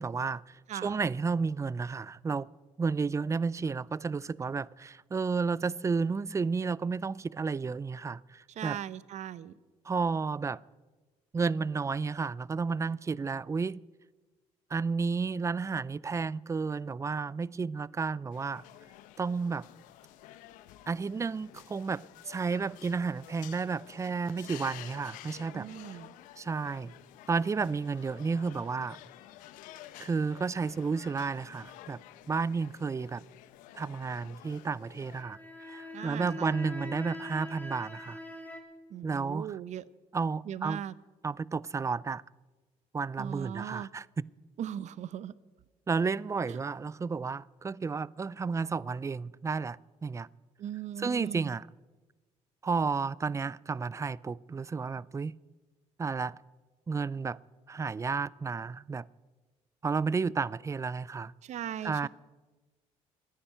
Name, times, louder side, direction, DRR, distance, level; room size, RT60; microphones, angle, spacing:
voice 1, 0.0-2.5 2.8-8.8 9.8-10.6 11.3-13.8 14.7-18.6 19.2-19.7 20.9-25.7 26.4-26.9 27.3-29.0 30.0-32.0 32.3-33.2 33.7-38.2 39.0-39.6 40.1-40.8 41.2-42.2 42.9-44.2 45.9-50.3 51.0-51.7 52.6-55.3 56.0-56.4 56.9-57.4 57.7-59.1 59.8-61.3 61.8-62.1, right 4 dB, 20° right, 0.4 m, -32 dB
voice 2, 8.6-9.5 25.5-26.1 35.9-36.5 38.9-39.8 40.5-40.9 43.2-43.9 44.6-45.3 46.5-46.6 50.6-51.5 61.4-62.1, right 10 dB, 60° right, 0.7 m, -39 dB
sound 1, 18.3-35.2, left 14 dB, 85° left, 0.8 m, -51 dB
sound 2, 35.1-38.6, left 2 dB, 10° left, 2.5 m, -43 dB
14.5 x 10.0 x 9.0 m
supercardioid pair, 75°, 13 cm